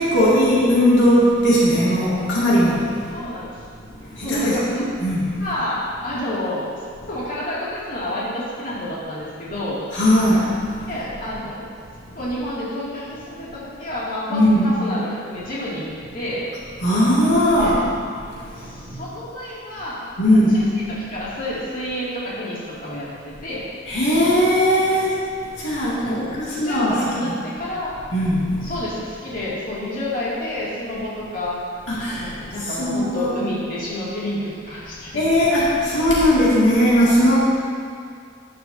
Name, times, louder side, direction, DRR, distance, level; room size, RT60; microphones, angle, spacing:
voice 1, 0.0-2.8 4.2-4.6 5.0-5.2 9.9-10.5 14.3-14.8 16.8-17.8 18.9-19.0 20.2-20.7 23.9-25.2 25.6-27.4 28.1-28.7 31.9-32.2 32.6-33.3 35.1-37.4, equal, 60° left, -8 dB, 2.2 m, -18 dB
voice 2, 3.1-3.5 4.2-4.9 5.4-6.7 7.1-9.8 10.9-11.7 12.1-16.5 17.6-17.8 18.6-20.0 20.3-20.6 20.9-23.7 24.9-25.0 26.0-27.9 28.6-31.6 32.1-35.3, left 1 dB, 45° left, -8 dB, 2.3 m, -29 dB
12.0 x 10.5 x 2.7 m, 2.3 s
head